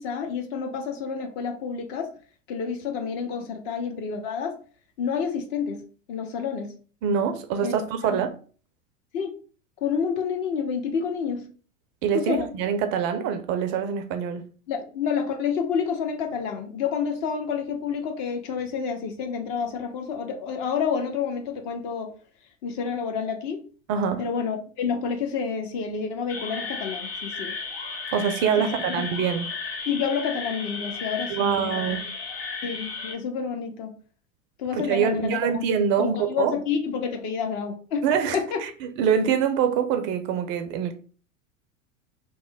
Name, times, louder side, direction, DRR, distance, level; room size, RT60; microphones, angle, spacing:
voice 1, 0.0-2.1 2.5-4.6 5.0-5.8 6.1-6.7 7.6-8.2 9.1-9.3 9.8-11.4 12.1-12.5 14.7-22.1 22.6-23.6 24.2-27.5 28.6-29.0 29.9-32.0 32.6-33.9 34.6-35.4 36.0-38.1 38.3-38.6, left 6 dB, 50° left, 0.8 m, -29 dB
voice 2, 7.0-8.3 12.0-14.4 23.9-24.2 28.1-29.5 31.3-32.0 34.8-36.6 38.0-40.9, right 7 dB, 30° right, 0.4 m, -25 dB
sound 1, 26.3-33.1, left 4 dB, 30° left, 1.6 m, -34 dB
3.0 x 2.1 x 3.4 m
figure-of-eight pair, 85°, 40 cm